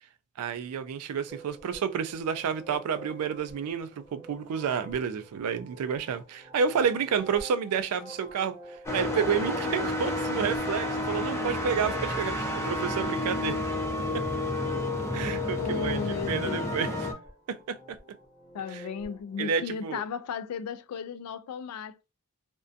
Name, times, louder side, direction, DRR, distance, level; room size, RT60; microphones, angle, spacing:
voice 1, 0.4-8.6 8.9-13.6 14.1-14.2 15.1-17.1 17.5-18.0 18.7-18.8 19.4-20.0, right 7 dB, 80° right, 0.3 m, -30 dB
sound 1, 1.3-19.6, right 1 dB, 15° right, 0.8 m, -50 dB
sound 2, 8.9-17.1, left 1 dB, 10° left, 0.5 m, -30 dB
voice 2, 15.6-17.0 18.5-22.1, left 6 dB, 80° left, 0.3 m, -35 dB
2.6 x 2.2 x 2.4 m
head